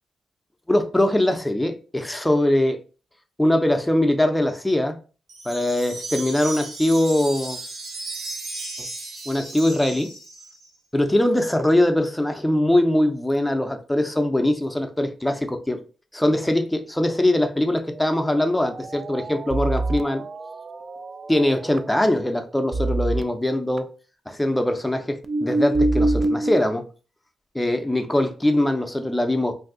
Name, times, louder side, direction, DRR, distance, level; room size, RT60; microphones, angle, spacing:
voice 1, 0.7-2.8 3.4-5.0 5.4-7.6 8.8-8.9 9.3-10.1 10.9-15.8 16.1-20.3 21.3-23.9 24.3-26.8 27.5-29.5, left 1 dB, 10° left, 0.6 m, -22 dB
Wind chime, 5.3-10.7, right 2 dB, 85° right, 0.9 m, -35 dB
sound 1, 17.8-22.3 22.7-23.2 23.8-23.9 25.2-26.6, right 2 dB, 45° right, 0.3 m, -26 dB
2.6 x 2.3 x 3.6 m
cardioid pair, 65°, 0 cm